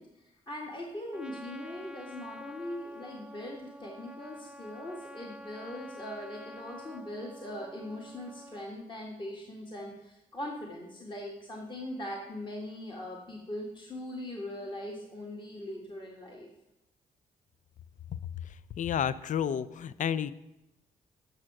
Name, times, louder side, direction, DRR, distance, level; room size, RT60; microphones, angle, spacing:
voice 1, 0.0-16.5, left 1 dB, 30° left, -1 dB, 1.8 m, -41 dB
Trumpet, 1.1-8.7, equal, 5° right, 0.6 m, -48 dB
voice 2, 18.8-20.3, left 8 dB, 60° left, 17 dB, 0.5 m, -30 dB
8.8 x 6.5 x 6.0 m, 0.91 s
cardioid pair, 70°, 15 cm